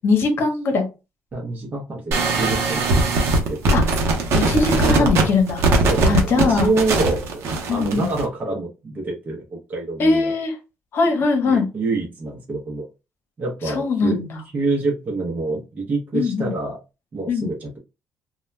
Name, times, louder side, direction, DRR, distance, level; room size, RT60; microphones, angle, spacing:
voice 1, 0.0-0.9 3.7-3.8 4.3-5.6 6.0-6.7 7.7-8.1 10.0-10.6 10.9-11.7 13.7-14.4 16.1-16.5 17.3-17.5, left 4 dB, 60° left, 5 dB, 0.8 m, -21 dB
voice 2, 1.3-4.2 4.8-5.3 5.9-7.4 7.7-10.3 11.4-12.9 13.4-14.3 14.5-16.8 17.1-17.8, right 3 dB, 35° right, -2 dB, 0.7 m, -27 dB
sound 1, 2.1-8.2, right 2 dB, 70° right, 0.7 m, -20 dB
2.2 x 2.2 x 3.1 m, 0.28 s
cardioid pair, 90°, 5 cm